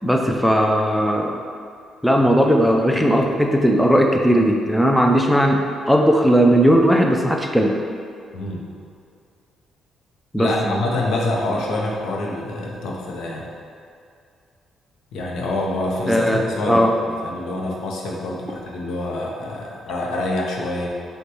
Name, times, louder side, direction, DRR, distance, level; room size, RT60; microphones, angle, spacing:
voice 1, 0.0-1.3 2.0-5.6 5.9-7.7 10.3-10.7 16.1-16.4 16.7-16.9, equal, ahead, 1 dB, 0.3 m, -17 dB
voice 2, 10.4-13.5 15.1-20.9, left 2 dB, 75° left, -2 dB, 0.6 m, -26 dB
6.1 x 2.2 x 2.9 m, 2.4 s
cardioid pair, 90°, 0 cm